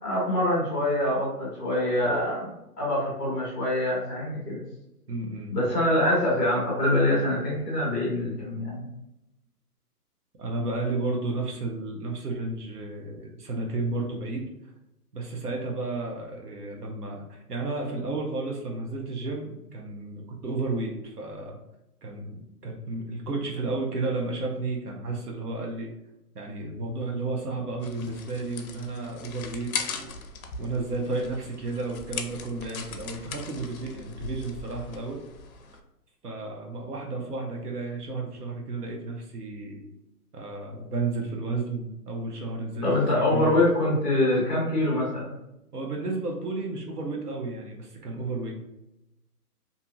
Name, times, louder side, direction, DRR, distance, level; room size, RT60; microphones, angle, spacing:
voice 1, 0.0-2.5 2.8-4.6 5.5-8.8 42.8-45.3, left 1 dB, ahead, -9 dB, 0.7 m, -25 dB
voice 2, 5.1-5.5 10.4-14.5 15.1-21.5 22.0-25.9 26.3-30.1 30.6-35.2 36.2-39.8 40.3-43.6 45.7-48.5, right 3 dB, 75° right, 0 dB, 0.9 m, -32 dB
sound 1, 27.8-35.8, left 4 dB, 65° left, 0.5 m, -39 dB
2.6 x 2.3 x 2.6 m, 0.90 s
hypercardioid pair, 165°, 47 cm